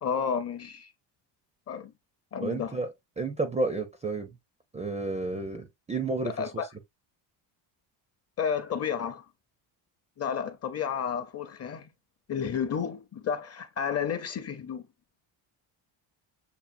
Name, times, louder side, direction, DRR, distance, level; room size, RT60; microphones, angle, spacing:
voice 1, 0.0-0.9 1.7-1.9 2.3-2.8 6.2-6.7 8.4-9.2 10.2-11.9 12.3-14.9, left 7 dB, 35° left, 0.6 m, -31 dB
voice 2, 2.4-2.9 3.2-4.3 4.7-6.5, right 3 dB, 15° right, 0.4 m, -31 dB
7.0 x 2.5 x 2.5 m
cardioid pair, 155°, 46 cm